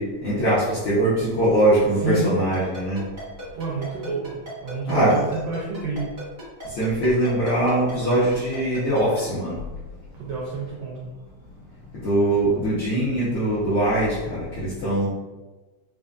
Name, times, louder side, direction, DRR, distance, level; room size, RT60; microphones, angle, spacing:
voice 1, 0.0-3.1 4.9-5.2 6.6-9.6 11.9-15.1, right 1 dB, 70° left, -10 dB, 1.2 m, -22 dB
Ringtone, 2.5-9.2, right 1 dB, 50° right, 0.5 m, -38 dB
voice 2, 3.5-6.0 10.1-11.1, right 4 dB, 80° right, -4 dB, 1.4 m, -29 dB
4.9 x 2.4 x 2.4 m, 1.2 s
omnidirectional pair, 3.5 m